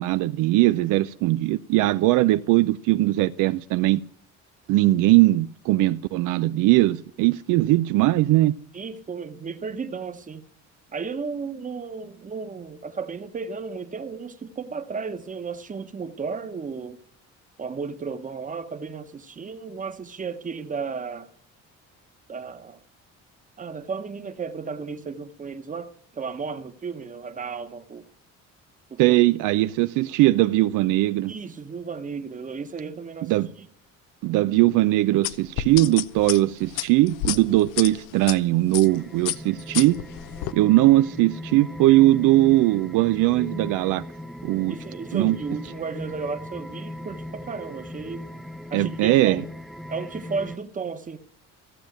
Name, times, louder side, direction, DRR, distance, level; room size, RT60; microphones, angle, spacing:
voice 1, 0.0-4.0 4.7-8.5 29.0-31.3 33.2-33.5 34.2-39.9 40.5-44.0 44.4-44.8 45.1-45.4 48.7-49.4, right 17 dB, 75° right, 0.5 m, -20 dB
voice 2, 8.7-10.4 10.9-17.0 17.6-21.3 22.3-22.8 23.6-28.0 28.9-29.2 31.3-33.3 33.6-33.7 44.7-48.3 48.7-49.4 49.9-51.2, right 5 dB, 25° right, 1.1 m, -34 dB
sound 1, 35.2-38.4 38.7-39.0 39.3-40.5, left 14 dB, 80° left, 0.8 m, -30 dB
sound 2, 38.8-50.6, left 1 dB, ahead, 0.7 m, -38 dB
14.5 x 7.3 x 9.1 m
cardioid pair, 115°, 31 cm